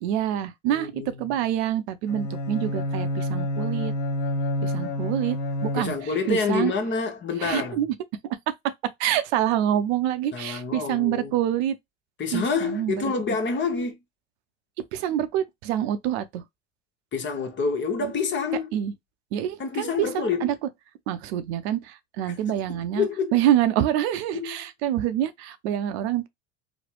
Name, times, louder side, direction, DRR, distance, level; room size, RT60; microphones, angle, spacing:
voice 1, 0.0-3.9 4.6-5.4 5.6-6.7 7.4-7.9 8.5-8.6 9.0-11.8 12.3-13.0 14.9-16.4 18.0-18.1 18.7-18.9 19.3-20.5 21.1-26.3, right 11 dB, 70° right, 0.6 m, -26 dB
voice 2, 0.7-1.5 5.8-7.8 10.3-11.3 12.2-14.0 17.1-18.7 19.6-20.5 22.8-23.4 24.3-24.6, left 5 dB, 35° left, 1.0 m, -27 dB
Bowed string instrument, 2.1-6.3, left 1 dB, 75° left, 0.8 m, -28 dB
3.1 x 2.1 x 2.9 m
hypercardioid pair, 80°, 33 cm